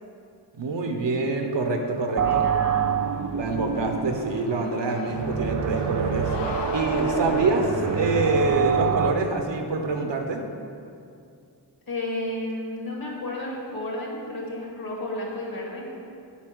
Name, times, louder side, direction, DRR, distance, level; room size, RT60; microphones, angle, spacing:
voice 1, 0.6-2.5 3.3-6.3 6.7-10.4, right 3 dB, 75° right, 4 dB, 1.0 m, -25 dB
sound 1, 1.4-9.1, left 2 dB, 70° left, 1.1 m, -39 dB
voice 2, 2.2-2.9 11.9-16.0, left 1 dB, 55° left, -2 dB, 2.1 m, -32 dB
sound 2, 2.2-9.1, right 7 dB, 40° right, 0.4 m, -27 dB
8.6 x 4.2 x 6.2 m, 2.4 s
wide cardioid pair, 70°, 43 cm